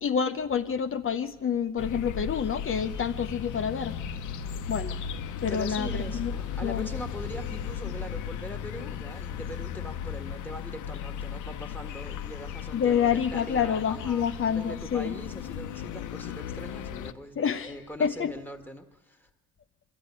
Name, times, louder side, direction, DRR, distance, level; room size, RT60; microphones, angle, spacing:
voice 1, 0.0-3.9 4.7-5.0 5.4-6.3 6.6-6.9 12.7-15.1 17.4-17.7 18.0-18.3, left 7 dB, 45° left, 0.8 m, -28 dB
sound 1, 1.8-17.1, left 8 dB, 80° left, 0.9 m, -36 dB
sound 2, 2.8-8.4, right 3 dB, 55° right, 1.6 m, -49 dB
voice 2, 5.5-19.3, equal, 5° left, 1.7 m, -42 dB
23.5 x 14.0 x 9.7 m
cardioid pair, 90°, 30 cm